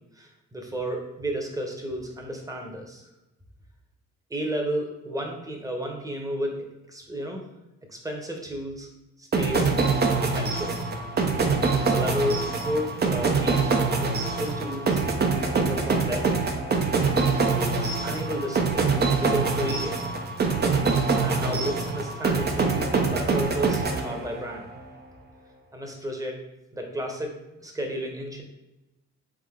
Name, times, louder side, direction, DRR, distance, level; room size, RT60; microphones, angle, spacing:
voice 1, 0.2-3.1 4.3-7.4 7.9-8.9 9.2-9.7 10.2-10.8 11.9-15.0 15.7-16.4 17.5-20.0 21.2-24.7 25.7-26.4 26.7-28.4, equal, 10° right, 2 dB, 1.0 m, -32 dB
sound 1, 9.3-24.6, right 4 dB, 35° right, 0.7 m, -24 dB
3.7 x 3.7 x 3.7 m, 0.97 s
cardioid pair, 90°, 30 cm